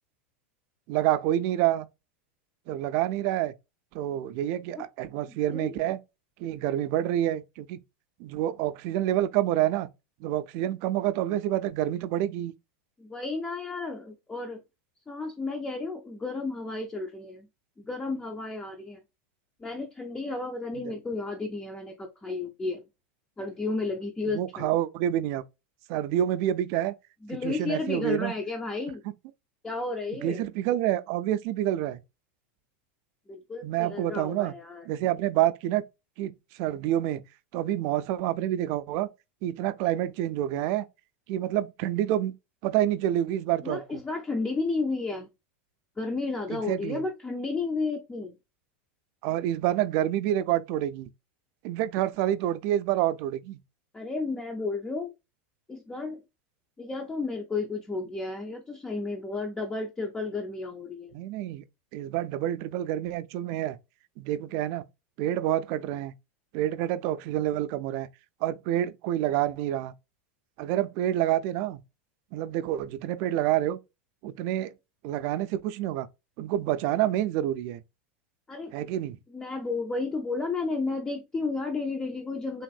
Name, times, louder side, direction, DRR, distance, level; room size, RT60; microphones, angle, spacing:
voice 1, 0.9-1.9 2.7-3.5 3.9-6.0 6.4-7.8 8.2-9.9 10.2-12.5 20.9-21.0 24.3-25.4 25.9-26.9 27.3-28.3 30.2-32.0 33.6-34.5 34.8-35.8 36.2-36.3 36.6-37.2 37.5-39.1 39.4-40.9 41.3-42.3 42.6-44.0 46.5-47.0 49.2-51.1 51.6-53.6 61.1-61.6 61.9-63.8 64.2-64.8 65.2-66.1 66.5-68.1 68.4-69.9 70.6-71.8 72.3-73.8 74.2-74.7 75.0-76.1 76.4-77.8 78.7-79.2, right 12 dB, 50° right, 0.4 m, -28 dB
voice 2, 13.0-14.6 15.1-17.5 17.8-19.0 19.6-22.9 23.4-24.8 27.2-29.0 29.6-30.4 33.3-34.9 43.6-45.3 46.0-48.3 53.9-55.1 55.7-56.2 56.8-61.1 78.5-78.7 79.3-82.6, left 3 dB, 10° left, 0.4 m, -32 dB
3.4 x 2.5 x 2.3 m
supercardioid pair, 140°, 7 cm